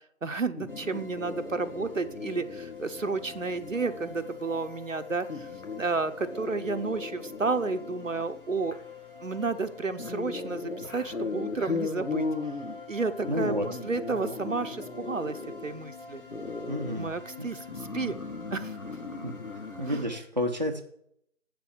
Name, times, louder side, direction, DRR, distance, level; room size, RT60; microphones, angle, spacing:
voice 1, 0.2-8.8 9.2-12.3 12.9-16.2 16.9-18.1 18.5-18.8 19.9-20.0, right 4 dB, 70° right, 9 dB, 1.0 m, -31 dB
sound 1, 0.6-20.1, left 4 dB, 85° left, 1.7 m, -38 dB
sound 2, 0.7-20.2, left 5 dB, 40° left, 1.6 m, -46 dB
voice 2, 13.3-13.7 16.7-17.1 17.4-17.5 19.2-19.3 19.8-20.8, equal, 35° right, 2 dB, 0.7 m, -30 dB
8.3 x 7.0 x 6.5 m, 0.68 s
figure-of-eight pair, 170°, 40 cm